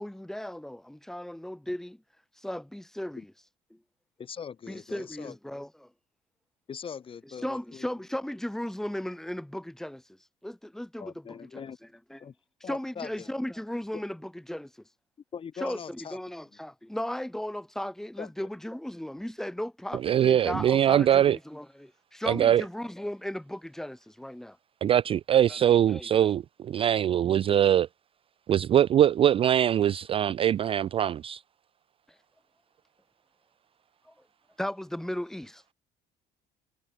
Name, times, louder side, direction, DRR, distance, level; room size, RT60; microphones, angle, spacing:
voice 1, 0.0-2.0 2.4-3.3 4.7-5.9 7.4-10.0 10.4-11.6 12.1-12.2 12.7-14.7 15.6-24.6 25.5-25.6 25.9-26.3 34.6-35.6, left 1 dB, ahead, 2.1 m, -36 dB
voice 2, 4.2-5.4 6.7-7.9 11.0-11.8 12.2-12.3 12.6-13.3 13.9-14.0 15.3-16.2 18.2-18.5, left 7 dB, 30° left, 2.3 m, -41 dB
voice 3, 19.9-21.4 22.3-22.6 24.8-27.9 28.5-31.4, right 10 dB, 30° right, 0.4 m, -22 dB
cardioid pair, 130°, 17 cm